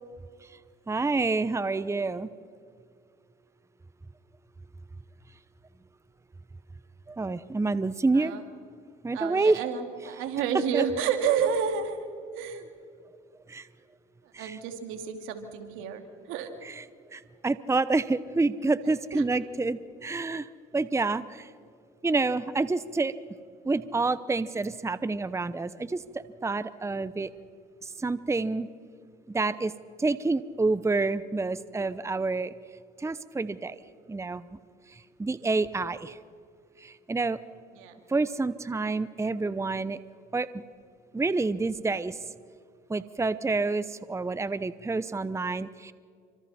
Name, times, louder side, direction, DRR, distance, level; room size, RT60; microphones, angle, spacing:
voice 1, 0.9-2.3 7.1-8.3 9.0-9.6 10.7-10.8 13.5-13.7 14.3-14.6 16.6-16.8 17.1-21.5 22.0-23.1 23.6-27.3 27.8-28.7 29.3-29.7 30.0-32.5 33.0-33.8 34.1-34.6 34.9-36.2 36.8-37.4 38.1-40.0 40.3-40.6 41.1-42.3 42.9-45.9, right 3 dB, 15° right, 15 dB, 0.8 m, -28 dB
voice 2, 9.1-12.1 12.3-12.7 14.4-16.5 19.1-19.2 37.8-38.0, right 7 dB, 80° right, 6 dB, 2.5 m, -30 dB
29.0 x 25.5 x 4.3 m, 2.2 s
supercardioid pair, 70°, 21 cm